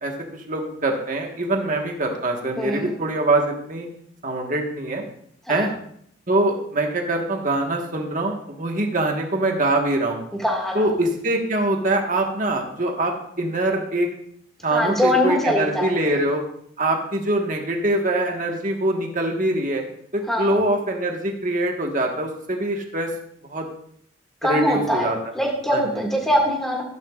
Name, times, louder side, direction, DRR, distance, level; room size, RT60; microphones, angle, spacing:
voice 1, 0.0-3.9 4.2-5.0 5.5-5.7 6.3-10.2 10.7-14.1 14.6-16.4 16.8-19.8 20.1-23.1 23.4-23.6 24.4-25.2 25.7-25.8, right 2 dB, 40° right, 2 dB, 1.5 m, -23 dB
voice 2, 2.6-2.9 5.5-5.7 10.4-10.9 14.7-16.2 20.3-20.6 24.4-25.1 25.3-26.8, equal, ahead, -1 dB, 2.0 m, -22 dB
12.5 x 11.5 x 2.4 m, 0.67 s
head